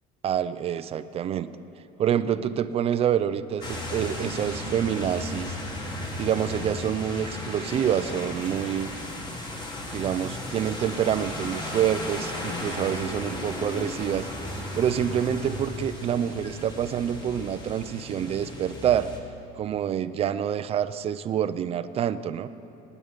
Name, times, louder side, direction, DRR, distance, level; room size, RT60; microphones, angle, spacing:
voice 1, 0.2-1.5 2.0-5.6 6.2-8.9 9.9-19.1 19.6-22.5, right 9 dB, 30° right, 12 dB, 0.5 m, -27 dB
sound 1, 3.6-19.2, left 1 dB, 20° left, 1.7 m, -35 dB
25.5 x 9.5 x 5.2 m, 2.8 s
cardioid pair, 155°, 21 cm